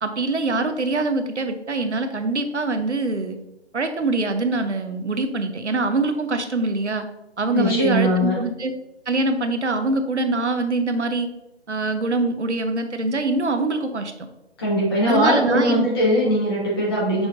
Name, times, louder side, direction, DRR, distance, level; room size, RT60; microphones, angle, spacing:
voice 1, 0.0-3.4 3.7-7.0 7.4-8.7 9.1-11.3 11.7-14.1 15.1-15.8, right 2 dB, 85° right, 8 dB, 0.7 m, -24 dB
voice 2, 7.5-8.4 14.6-17.3, equal, 20° left, -6 dB, 1.5 m, -20 dB
6.1 x 3.4 x 2.5 m, 0.92 s
figure-of-eight pair, 150°, 34 cm